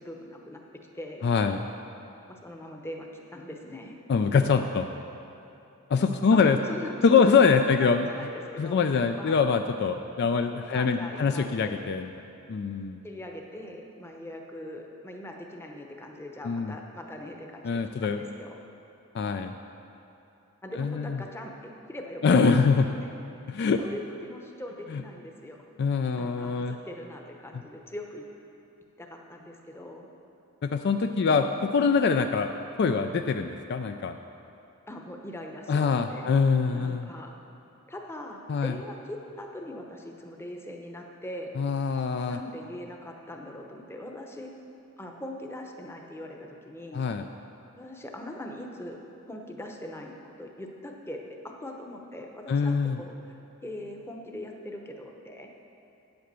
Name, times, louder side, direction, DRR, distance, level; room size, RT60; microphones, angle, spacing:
voice 1, 0.0-1.3 2.3-4.0 6.3-7.3 7.8-9.4 10.2-10.4 10.7-11.8 13.0-18.6 20.6-23.1 23.8-25.6 26.1-28.2 29.0-30.1 31.3-31.6 34.9-36.4 36.7-37.3 37.9-41.5 42.3-44.5 45.0-47.0 47.8-49.0 49.3-55.5, left 1 dB, 10° left, 2 dB, 0.8 m, -41 dB
voice 2, 1.2-1.6 4.1-4.9 5.9-6.6 7.0-8.1 8.6-12.1 12.5-13.0 16.4-16.7 17.6-18.2 19.1-19.5 20.8-21.2 22.2-22.9 23.5-23.8 24.9-25.0 25.8-26.8 30.6-31.4 31.7-32.5 32.8-34.2 35.7-37.1 38.5-38.7 41.6-42.4 46.9-47.3 52.5-53.0, left 5 dB, 50° left, 7 dB, 0.3 m, -24 dB
8.9 x 7.9 x 6.7 m, 2.8 s
head